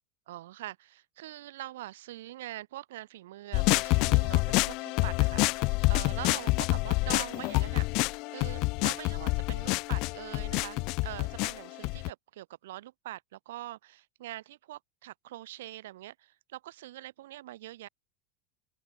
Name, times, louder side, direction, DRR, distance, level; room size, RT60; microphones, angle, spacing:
voice 1, 0.3-17.9, right 15 dB, 80° right, 2.1 m, -43 dB
sound 1, 3.5-12.1, left 25 dB, 45° left, 0.5 m, -27 dB
open air
supercardioid pair, 155°, 0 cm